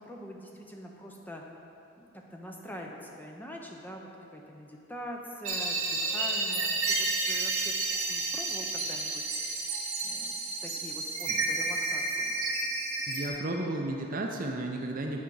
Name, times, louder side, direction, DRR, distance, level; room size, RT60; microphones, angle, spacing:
voice 1, 0.0-1.4 2.0-7.8 8.1-9.7 10.0-12.4, equal, 10° left, 0 dB, 0.6 m, -44 dB
sound 1, 5.4-13.3, right 3 dB, 75° right, 1.5 m, -31 dB
voice 2, 13.1-15.2, right 2 dB, 40° right, 2 dB, 0.5 m, -33 dB
9.3 x 4.9 x 4.7 m, 2.8 s
head